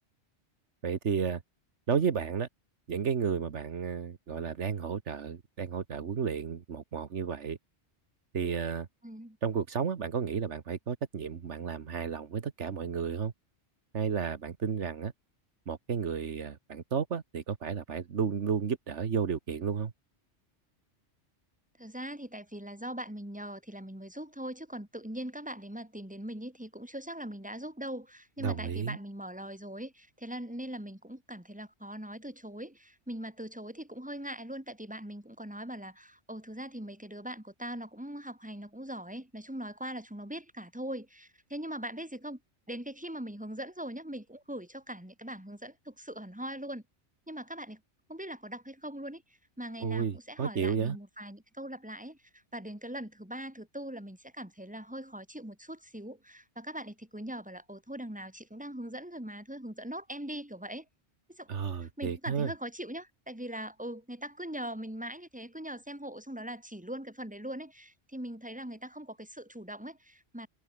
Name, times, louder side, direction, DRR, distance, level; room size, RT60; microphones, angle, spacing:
voice 1, 0.8-1.4 1.9-2.5 2.9-7.6 8.3-8.9 9.4-13.3 13.9-15.1 15.7-19.9 28.4-29.0 49.8-51.0 61.5-62.5, right 6 dB, 80° right, 1.6 m, -32 dB
voice 2, 9.0-9.4 21.8-42.4 42.7-46.8 47.3-47.8 48.1-49.2 49.6-60.9 61.3-61.5 61.8-70.5, right 1 dB, 5° right, 3.5 m, -41 dB
omnidirectional pair, 1.2 m